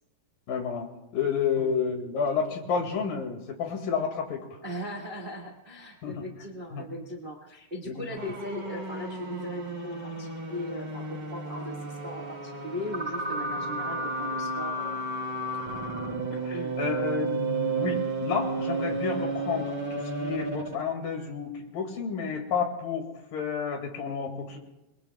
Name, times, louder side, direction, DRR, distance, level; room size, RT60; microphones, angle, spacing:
voice 1, 0.5-0.9 1.1-4.6 6.0-6.2 6.7-6.9 7.9-8.3 16.5-24.6, left 6 dB, 80° left, 3 dB, 3.9 m, -31 dB
voice 2, 4.6-15.0 16.3-16.7, left 1 dB, 30° right, 0 dB, 0.9 m, -38 dB
sound 1, 8.2-20.9, right 3 dB, 80° right, 0.4 m, -32 dB
27.5 x 22.5 x 2.3 m, 0.94 s
omnidirectional pair, 4.0 m